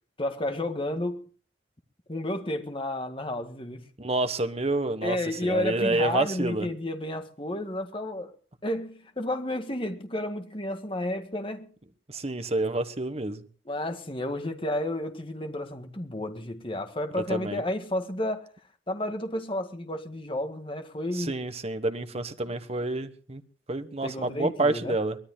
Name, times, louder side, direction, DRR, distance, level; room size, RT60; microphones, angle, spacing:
voice 1, 0.2-1.3 2.1-3.9 5.0-8.3 8.6-11.7 13.7-18.5 18.9-21.4 22.5-22.6 24.0-25.0, left 1 dB, 25° left, 1.8 m, -31 dB
voice 2, 4.0-5.2 5.4-6.7 12.1-13.4 17.1-17.6 21.2-23.4 23.7-25.2, right 2 dB, 35° right, 1.2 m, -28 dB
23.5 x 18.5 x 2.3 m
head